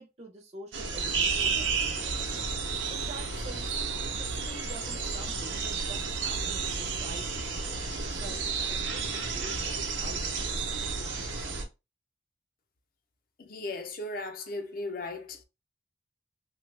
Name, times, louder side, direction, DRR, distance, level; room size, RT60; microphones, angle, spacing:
voice 1, 0.0-2.2 2.9-3.7 4.2-7.5 8.0-10.7, right 2 dB, 35° right, 0.6 m, -47 dB
sound 1, 0.7-11.6, right 4 dB, 85° right, 0.8 m, -32 dB
voice 2, 13.4-15.4, left 2 dB, 50° left, 0.6 m, -37 dB
2.9 x 2.3 x 3.2 m
head